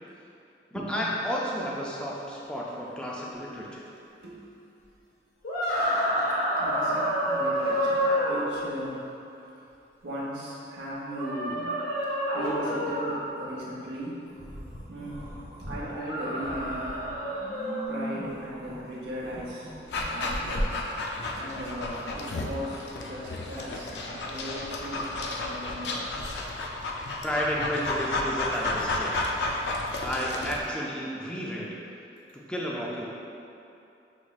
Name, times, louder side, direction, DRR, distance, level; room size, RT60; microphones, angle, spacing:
voice 1, 0.7-3.8 27.2-29.2 30.0-31.7 32.5-33.1, equal, 5° left, -4 dB, 0.4 m, -32 dB
sound 1, 5.4-8.4 11.1-13.2 15.8-17.9, equal, 60° left, 0.8 m, -28 dB
voice 2, 6.6-9.1 10.0-11.8 12.3-14.2 14.9-15.3 15.6-17.0 17.9-19.7 20.1-20.7 21.3-26.0, equal, 90° right, -6 dB, 0.8 m, -37 dB
sound 2, 14.3-15.8 16.2-20.5, equal, 35° left, 1.1 m, -41 dB
Dog, 19.9-30.6, left 2 dB, 75° left, 0.4 m, -32 dB
5.9 x 3.0 x 2.3 m, 2.8 s
head